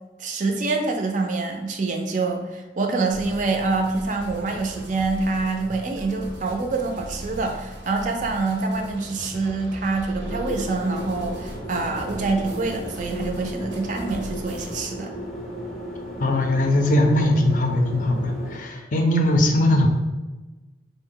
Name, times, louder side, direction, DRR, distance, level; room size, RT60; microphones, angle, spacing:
voice 1, 0.2-15.1, right 3 dB, 45° right, 3 dB, 0.4 m, -26 dB
sound 1, 3.1-14.9, equal, 80° right, 0.7 m, -39 dB
sound 2, 10.2-18.6, equal, 5° left, 0.6 m, -35 dB
voice 2, 16.2-19.9, left 1 dB, 45° left, 3 dB, 0.4 m, -20 dB
3.6 x 2.1 x 3.7 m, 1.2 s
head